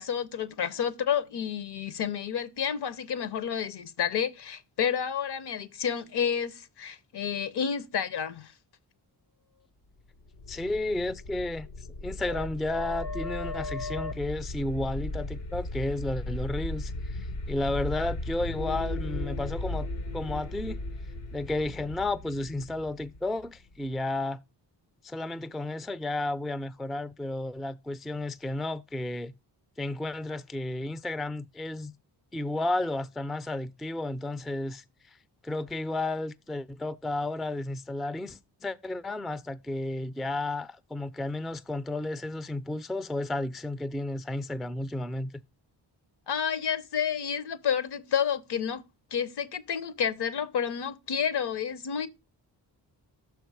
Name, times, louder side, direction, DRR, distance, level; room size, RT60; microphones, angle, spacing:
voice 1, 0.0-8.5 46.3-48.8 49.1-52.1, left 8 dB, 60° left, 0.8 m, -30 dB
sound 1, 10.2-23.9, left 2 dB, 80° left, 1.1 m, -36 dB
voice 2, 10.5-11.7 12.0-19.9 20.1-20.8 21.3-24.4 25.0-29.3 29.8-31.9 32.3-35.2 35.4-45.3, left 2 dB, ahead, 0.3 m, -32 dB
6.2 x 4.6 x 4.7 m
cardioid pair, 55°, 44 cm